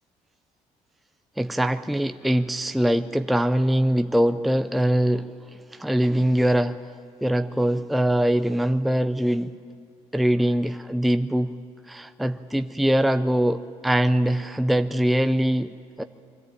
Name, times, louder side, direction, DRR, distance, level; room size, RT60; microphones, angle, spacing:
voice 1, 1.4-6.8 7.2-9.6 10.1-11.5 11.9-16.0, right 1 dB, ahead, 10 dB, 0.4 m, -23 dB
22.5 x 14.0 x 9.1 m, 2.3 s
cardioid pair, 110°, 13 cm